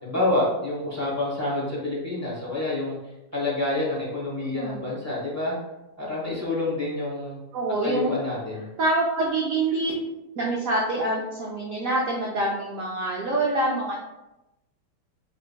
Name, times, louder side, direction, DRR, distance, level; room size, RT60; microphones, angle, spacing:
voice 1, 0.0-3.0 3.3-5.6 6.0-7.4 7.8-8.6, left 2 dB, 15° left, -7 dB, 0.7 m, -27 dB
voice 2, 4.5-4.8 7.5-8.1 8.8-9.9 10.4-14.0, right 2 dB, 80° right, -3 dB, 0.7 m, -25 dB
4.7 x 3.3 x 2.2 m, 0.97 s
omnidirectional pair, 2.2 m